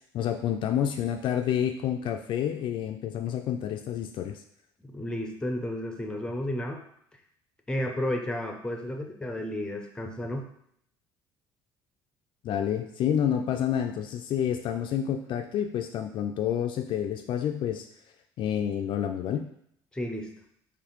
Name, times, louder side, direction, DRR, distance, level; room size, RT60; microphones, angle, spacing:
voice 1, 0.1-4.4 12.4-17.9 18.4-19.5, left 9 dB, 55° left, 5 dB, 0.4 m, -29 dB
voice 2, 4.8-6.8 7.7-10.5 19.9-20.3, left 1 dB, 10° left, 3 dB, 0.6 m, -32 dB
4.0 x 3.0 x 3.0 m, 0.70 s
cardioid pair, 100°, 10 cm